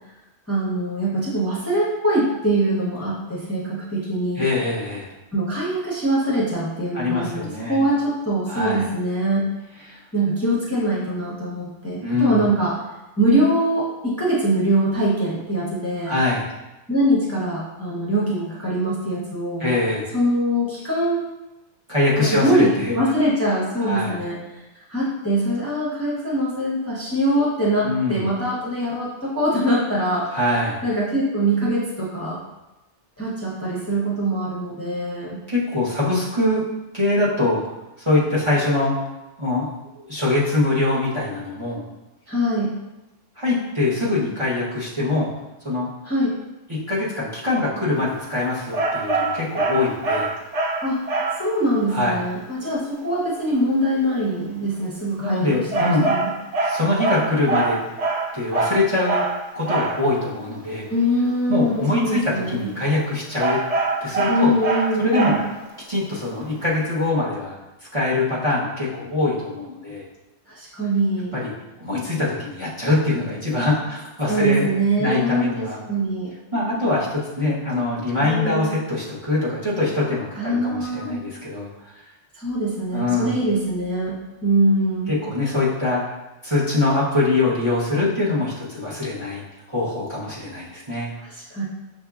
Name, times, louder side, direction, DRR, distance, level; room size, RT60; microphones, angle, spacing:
voice 1, 0.5-4.4 5.3-9.5 10.1-12.7 13.2-16.2 16.9-19.7 20.1-21.3 22.2-30.5 30.8-32.4 33.2-35.4 42.3-42.7 46.0-46.3 50.8-51.0 51.4-56.3 60.9-62.7 64.3-65.4 70.5-71.4 74.3-76.3 78.2-78.7 80.4-81.2 82.3-85.1 91.2-91.6, right 1 dB, 15° left, -7 dB, 0.7 m, -23 dB
voice 2, 4.4-5.1 6.9-7.8 8.5-8.8 9.9-10.0 12.0-12.5 16.0-16.5 19.6-20.1 21.9-23.0 23.8-24.2 27.8-28.2 30.3-30.8 35.5-36.6 36.9-37.6 38.0-38.9 39.4-39.7 39.9-41.8 43.4-45.3 45.6-45.9 46.7-50.3 51.9-52.2 55.2-56.1 56.6-57.8 58.3-59.2 59.5-60.9 61.5-63.6 64.0-64.5 65.0-65.4 65.9-67.6 67.9-70.1 71.3-71.5 71.8-74.7 75.0-75.8 76.5-81.7 82.9-83.4 85.1-86.0 86.4-89.4 89.7-91.1, left 2 dB, 30° right, -8 dB, 0.9 m, -23 dB
sound 1, 48.7-51.5 55.7-60.1 63.4-65.7, right 3 dB, 75° right, 0.3 m, -24 dB
6.7 x 2.7 x 2.3 m, 1.0 s
omnidirectional pair, 1.2 m